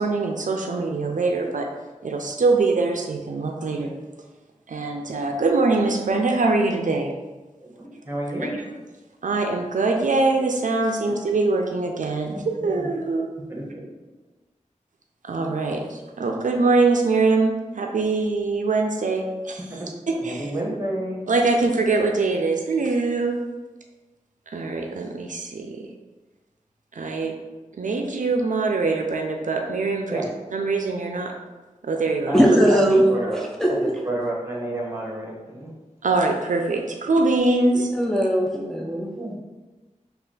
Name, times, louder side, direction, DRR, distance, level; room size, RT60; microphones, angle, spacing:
voice 1, 0.0-1.7 2.0-3.9 4.7-7.1 8.4-8.5 9.2-13.3 15.2-20.5 21.3-23.4 24.5-25.8 26.9-27.3 27.8-31.3 31.8-32.4 32.7-32.8 36.0-37.9, right 3 dB, 75° right, 2 dB, 0.4 m, -23 dB
voice 2, 7.6-8.5 11.1-11.2 12.3-12.9 13.5-13.8 19.6-19.9 20.1-21.2 30.1-30.2 32.2-32.8 33.1-33.4 33.7-35.7 39.1-39.4, right 1 dB, 20° right, -3 dB, 1.1 m, -30 dB
voice 3, 32.3-33.0 33.6-33.9 37.9-39.4, equal, 5° left, -1 dB, 0.4 m, -19 dB
3.2 x 2.3 x 3.7 m, 1.2 s
wide cardioid pair, 45°, 13 cm